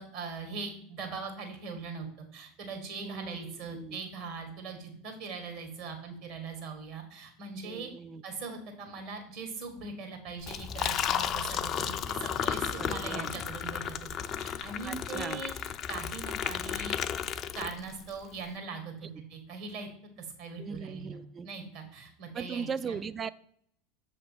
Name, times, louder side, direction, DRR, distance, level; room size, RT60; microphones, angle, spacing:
voice 1, 0.0-7.9 8.2-14.0 14.4-15.5 15.9-17.0 17.5-19.9 20.2-21.2 21.4-23.0, right 4 dB, 60° right, 4 dB, 1.9 m, -41 dB
voice 2, 3.0-4.0 7.6-8.2 12.7-13.3 14.8-15.4 20.6-21.5 22.3-23.3, right 6 dB, 25° right, 16 dB, 0.3 m, -38 dB
Liquid, 10.4-18.1, left 8 dB, 40° left, 0.4 m, -33 dB
6.5 x 3.2 x 6.0 m, 0.67 s
hypercardioid pair, 85°, 0 cm